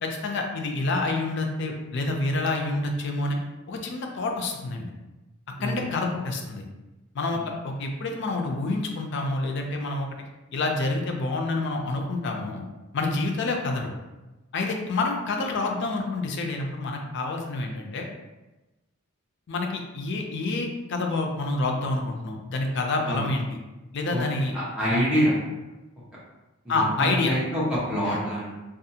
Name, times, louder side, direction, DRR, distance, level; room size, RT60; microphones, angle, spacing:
voice 1, 0.0-3.4 3.7-4.9 5.6-6.6 7.1-10.1 10.5-12.6 12.9-13.9 14.5-18.1 19.5-23.6 23.9-24.5 24.9-25.0 26.7-27.3 28.1-28.2, left 2 dB, 60° left, 2 dB, 0.4 m, -28 dB
voice 2, 24.5-25.3 26.6-27.6 27.9-28.5, equal, 5° right, -9 dB, 0.8 m, -26 dB
2.6 x 2.3 x 2.7 m, 1.1 s
head